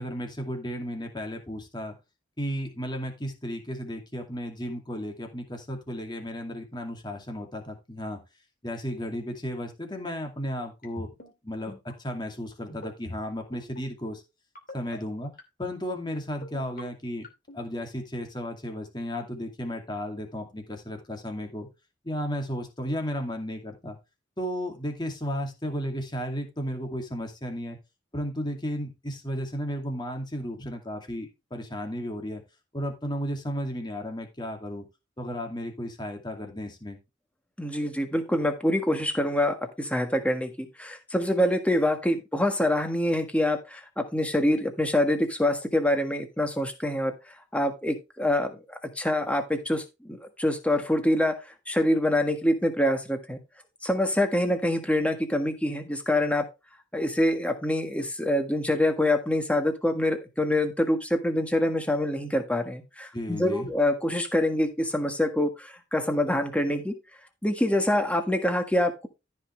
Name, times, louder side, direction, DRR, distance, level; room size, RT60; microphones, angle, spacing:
voice 1, 0.0-2.0 2.4-8.2 8.6-11.1 11.4-14.2 14.7-15.3 15.6-17.3 17.5-21.7 22.0-24.0 24.4-27.8 28.1-32.4 32.7-34.9 35.2-37.0 63.1-63.7, equal, 20° left, 3 dB, 2.4 m, -34 dB
sound 1, 10.8-11.3 11.7-11.9 12.7-13.2 13.5-13.8 14.5-15.0 15.4-15.7 16.4-16.8 17.2-17.6, left 1 dB, 45° left, 2.5 m, -41 dB
voice 2, 37.6-47.1 47.5-51.4 51.7-53.4 53.8-56.5 56.9-66.9 67.4-69.1, left 1 dB, 5° left, 6 dB, 1.5 m, -25 dB
14.0 x 5.8 x 3.2 m, 0.25 s
head